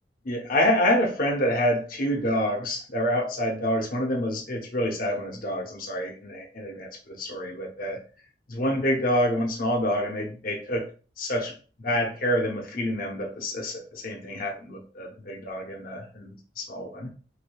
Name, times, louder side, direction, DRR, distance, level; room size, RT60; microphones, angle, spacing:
voice 1, 0.2-8.0 8.5-10.9 11.2-17.1, equal, 55° left, 1 dB, 0.8 m, -27 dB
3.3 x 3.3 x 2.2 m, 0.38 s
head